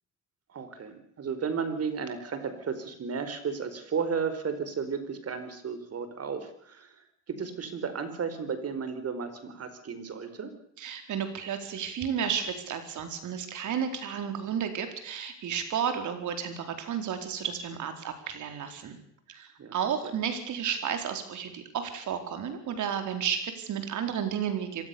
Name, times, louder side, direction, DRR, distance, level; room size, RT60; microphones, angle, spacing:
voice 1, 0.5-6.9 7.3-10.5 19.6-19.7, right 6 dB, 55° right, 10 dB, 4.7 m, -33 dB
voice 2, 10.8-19.0 19.3-24.9, right 8 dB, 75° right, 7 dB, 4.4 m, -32 dB
25.5 x 19.0 x 7.1 m, 0.68 s
cardioid pair, 90°, 30 cm